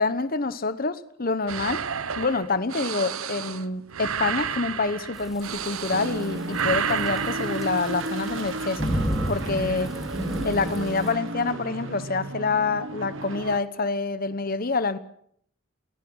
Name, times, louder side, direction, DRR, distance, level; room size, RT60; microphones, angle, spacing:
voice 1, 0.0-1.8 2.1-8.8 9.3-9.9 10.4-15.0, left 3 dB, 45° left, 1.1 m, -27 dB
sound 1, 1.5-6.2 6.5-7.7, right 7 dB, 80° right, 0.9 m, -31 dB
Thunderstorm / Rain, 5.1-11.1, equal, ahead, 2.6 m, -32 dB
sound 2, 5.9-13.6, right 2 dB, 65° right, 1.4 m, -33 dB
29.0 x 19.5 x 6.4 m
head